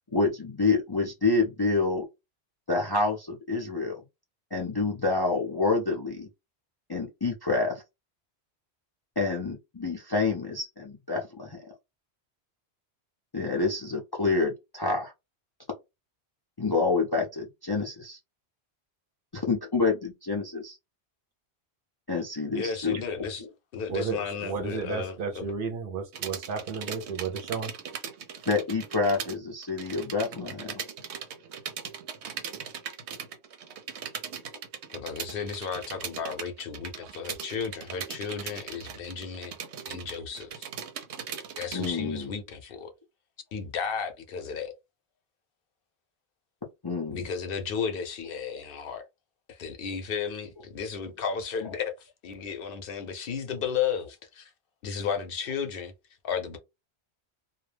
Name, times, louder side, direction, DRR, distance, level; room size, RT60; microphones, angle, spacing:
voice 1, 0.1-2.0 2.7-4.0 4.5-6.3 6.9-7.8 9.2-11.7 13.3-15.1 16.6-18.2 19.3-20.8 22.1-23.0 23.4-23.5 28.5-30.8 41.7-42.3 46.8-47.3, left 3 dB, 35° left, 0.4 m, -28 dB
voice 2, 22.6-23.4 23.7-25.4 34.9-39.5 39.9-40.7 41.6-42.9 43.5-44.7 47.1-49.0 49.5-54.5 54.8-55.9 56.2-56.6, left 6 dB, 65° left, 0.7 m, -34 dB
voice 3, 23.9-27.8, right 5 dB, 60° right, 0.7 m, -33 dB
sound 1, 26.1-29.4 29.6-41.9, right 7 dB, 90° right, 0.9 m, -39 dB
2.3 x 2.1 x 3.2 m
omnidirectional pair, 1.1 m